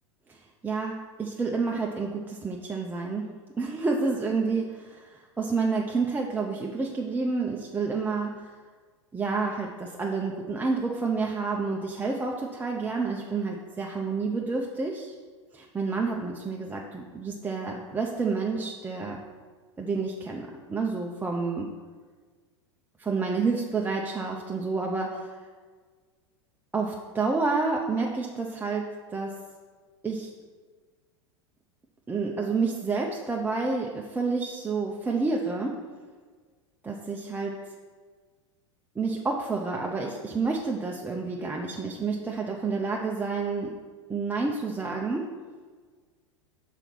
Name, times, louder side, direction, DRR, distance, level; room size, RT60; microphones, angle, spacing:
voice 1, 0.3-3.3 3.6-8.5 9.1-15.1 15.5-19.2 19.8-21.7 23.0-25.3 26.7-29.4 30.0-30.3 32.1-35.8 36.8-37.6 39.0-43.8 44.1-45.3, right 4 dB, 10° right, -1 dB, 0.6 m, -29 dB
5.6 x 4.0 x 5.9 m, 1.5 s
hypercardioid pair, 90°, 16 cm